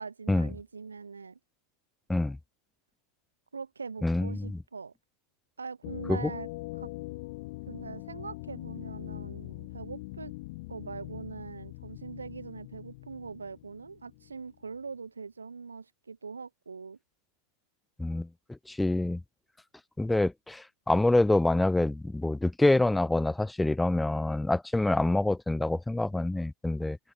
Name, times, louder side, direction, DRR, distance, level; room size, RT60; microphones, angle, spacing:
voice 1, 0.0-1.4 3.5-4.9 5.6-6.5 6.8-6.9 7.7-10.3 10.7-17.0, right 5 dB, 75° right, 2.2 m, -42 dB
voice 2, 4.0-4.6 6.1-6.3 18.0-19.2 20.0-27.0, left 2 dB, 5° left, 0.7 m, -26 dB
sound 1, 5.8-14.5, left 22 dB, 50° left, 2.2 m, -42 dB
figure-of-eight pair, 90°, 0 cm